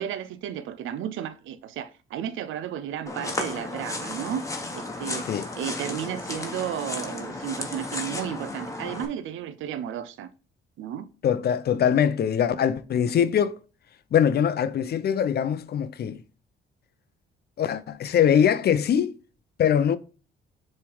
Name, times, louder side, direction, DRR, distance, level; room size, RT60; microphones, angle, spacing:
voice 1, 0.0-4.4 4.7-5.3 5.6-10.3 10.8-11.1, right 10 dB, 80° right, 0.6 m, -33 dB
sound 1, 3.1-9.1, left 2 dB, 15° left, 1.3 m, -34 dB
voice 2, 11.2-13.6 14.1-16.2 17.6-19.1 19.6-20.0, left 8 dB, 55° left, 0.6 m, -22 dB
6.8 x 3.3 x 4.7 m
cardioid pair, 90°, 20 cm